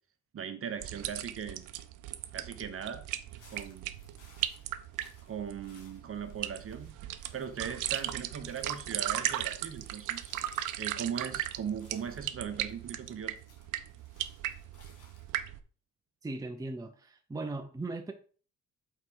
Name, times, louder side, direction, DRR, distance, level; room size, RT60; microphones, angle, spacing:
voice 1, 0.3-1.7 2.3-3.0 3.5-3.9 5.3-6.9 7.3-10.3 10.8-13.4, right 7 dB, 45° right, 1.1 m, -39 dB
sound 1, 0.8-15.6, right 13 dB, 85° right, 0.6 m, -37 dB
sound 2, 3.1-15.4, left 3 dB, 85° left, 2.3 m, -62 dB
voice 2, 16.2-18.1, right 2 dB, 10° right, 0.7 m, -38 dB
5.8 x 4.5 x 4.6 m
cardioid pair, 90°, 30 cm